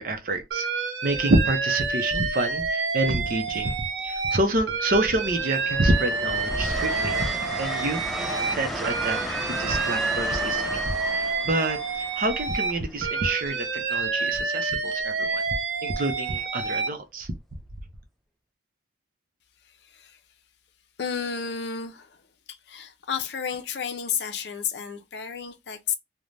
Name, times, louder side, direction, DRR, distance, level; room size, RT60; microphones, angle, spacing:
voice 1, 0.0-3.8 4.0-7.2 7.6-8.3 8.5-9.2 9.5-10.8 11.1-15.4 15.8-17.3, right 2 dB, 50° right, 0.6 m, -27 dB
Alarm, 0.5-4.4 4.7-8.5 8.8-12.7 13.0-16.9, right 4 dB, 90° right, 0.7 m, -28 dB
Train, 1.9-2.2 3.5-4.2 4.6-13.4 15.0-15.2, equal, ahead, 0.4 m, -34 dB
voice 2, 19.6-20.2 21.0-26.0, left 7 dB, 70° left, 0.5 m, -32 dB
3.2 x 2.1 x 2.5 m
head